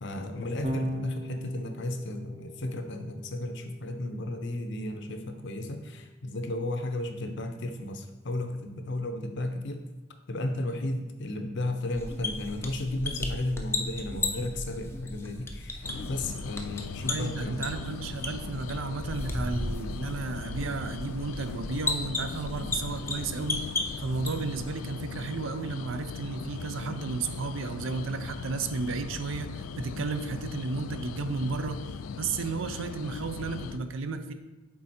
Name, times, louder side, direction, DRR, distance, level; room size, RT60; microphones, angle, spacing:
voice 1, 0.0-9.8 10.3-17.6, left 1 dB, 60° left, 6 dB, 0.7 m, -34 dB
Electric guitar / Bass guitar, 0.6-7.0, equal, 30° right, 0.7 m, -41 dB
sound 1, 12.0-24.7, left 2 dB, 15° left, 0.5 m, -35 dB
sound 2, 15.8-33.8, left 5 dB, 90° left, 0.3 m, -39 dB
voice 2, 17.1-23.6 24.0-31.8 32.2-34.3, right 4 dB, 75° right, 9 dB, 0.5 m, -33 dB
7.4 x 3.8 x 4.3 m, 1.1 s
head